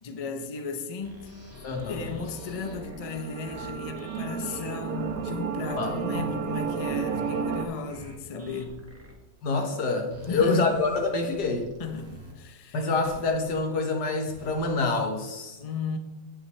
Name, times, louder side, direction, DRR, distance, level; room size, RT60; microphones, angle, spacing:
voice 1, 0.0-1.3 1.9-8.8 10.3-10.7 11.8-12.9 15.6-16.0, left 5 dB, 50° left, 0.4 m, -35 dB
sound 1, 1.0-9.1 10.1-12.3 13.0-13.6 14.3-15.0, equal, 10° right, 1.4 m, -48 dB
voice 2, 1.6-2.1 5.8-6.3 9.4-11.7 12.7-15.6, left 3 dB, 65° left, 1.9 m, -27 dB
sound 2, 1.8-7.6, right 6 dB, 60° right, 1.1 m, -32 dB
17.0 x 6.1 x 3.2 m
omnidirectional pair, 1.9 m